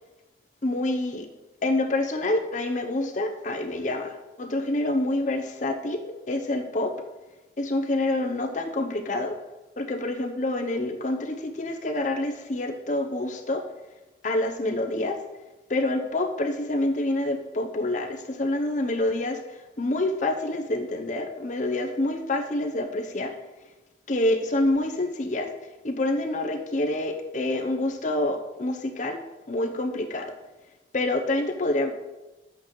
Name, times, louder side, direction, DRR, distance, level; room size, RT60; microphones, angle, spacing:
voice 1, 0.6-1.3 1.6-7.0 7.6-9.4 9.8-13.6 14.2-15.2 15.7-23.3 24.1-25.5 25.8-29.2 29.5-30.3 30.9-31.9, left 2 dB, 45° left, 3 dB, 0.8 m, -27 dB
10.5 x 8.0 x 3.2 m, 1.1 s
head